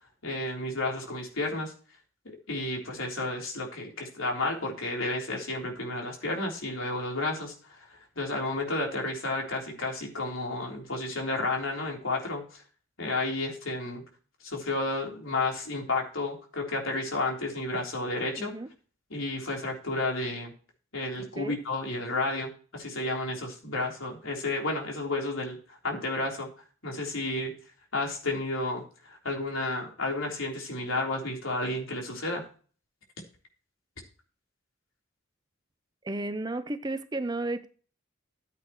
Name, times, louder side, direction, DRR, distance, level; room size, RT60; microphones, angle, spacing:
voice 1, 0.2-1.7 2.5-12.6 13.0-14.0 14.4-18.5 19.1-20.5 20.9-26.5 26.8-27.5 27.9-32.4, left 2 dB, 75° left, 3.7 m, -32 dB
voice 2, 18.4-18.7 21.2-21.6 36.0-37.7, right 2 dB, 20° right, 0.6 m, -33 dB
14.5 x 8.4 x 3.1 m
head